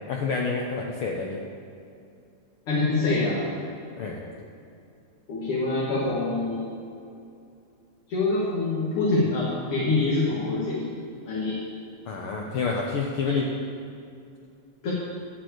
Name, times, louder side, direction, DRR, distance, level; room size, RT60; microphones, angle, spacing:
voice 1, 0.1-1.4 3.9-4.2 12.1-13.5, left 4 dB, 80° left, 0 dB, 1.2 m, -28 dB
voice 2, 2.7-3.5 5.3-6.6 8.1-10.9 11.2-11.6 13.3-13.4 14.8-14.9, left 3 dB, 55° left, -6 dB, 2.1 m, -25 dB
11.5 x 4.6 x 7.8 m, 2.5 s
omnidirectional pair, 3.3 m